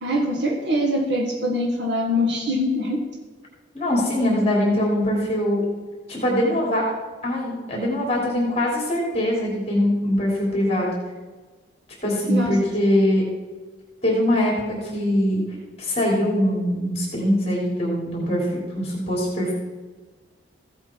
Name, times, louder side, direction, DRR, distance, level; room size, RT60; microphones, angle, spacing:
voice 1, 0.0-3.0 12.3-12.6, left 1 dB, 60° right, 1 dB, 1.5 m, -23 dB
voice 2, 3.7-5.6 6.1-6.8 7.2-10.9 12.0-13.2 14.0-15.4 15.8-19.5, left 1 dB, 30° left, -3 dB, 3.3 m, -22 dB
15.5 x 8.1 x 4.5 m, 1.3 s
head